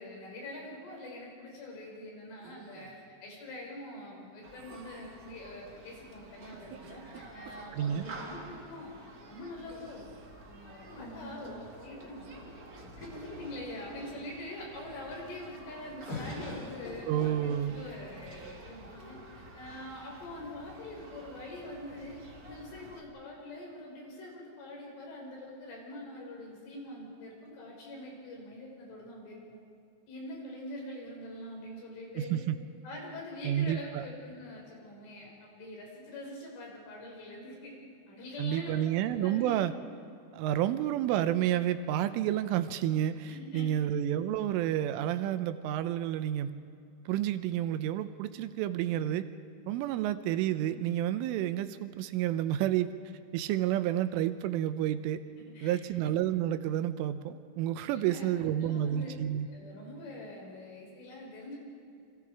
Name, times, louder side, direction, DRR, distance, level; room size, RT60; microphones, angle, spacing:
voice 1, 0.0-2.9 3.2-9.0 9.3-10.0 10.5-12.3 13.0-19.2 19.6-29.6 30.1-32.4 32.8-37.7 38.1-38.8 39.2-39.5 43.3-43.7 55.5-55.8 57.8-59.1 59.5-61.6, left 1 dB, 75° left, -1 dB, 7.7 m, -44 dB
sound 1, 2.4-3.1 4.5-5.2 6.4-8.2 9.7-10.4 12.1-12.7 13.0-13.4 14.8-15.2, right 6 dB, 55° right, 3.6 m, -53 dB
Human group actions, 4.4-23.0, right 1 dB, 40° right, 1.3 m, -50 dB
voice 2, 7.7-8.0 17.1-17.8 32.2-32.6 33.4-34.0 38.4-39.7 40.3-46.5 47.1-49.3 49.7-52.9 53.3-55.2 55.6-59.5, right 11 dB, 85° right, 11 dB, 3.4 m, -30 dB
sound 2, 7.8-8.9 10.8-12.4 13.1-13.2 13.5-14.1 16.1-18.0 18.9-19.6, left 1 dB, 55° left, 8.1 m, -45 dB
29.0 x 25.0 x 4.9 m, 2.4 s
omnidirectional pair, 5.7 m